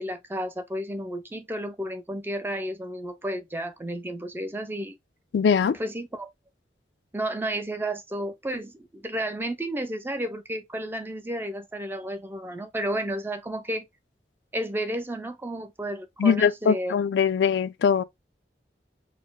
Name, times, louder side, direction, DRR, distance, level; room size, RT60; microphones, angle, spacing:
voice 1, 0.0-5.0 5.8-6.3 7.1-13.9 14.5-17.0, right 1 dB, 10° right, 0.4 m, -32 dB
voice 2, 5.3-5.8 16.2-18.0, left 6 dB, 80° left, 0.3 m, -22 dB
4.0 x 2.0 x 3.7 m
head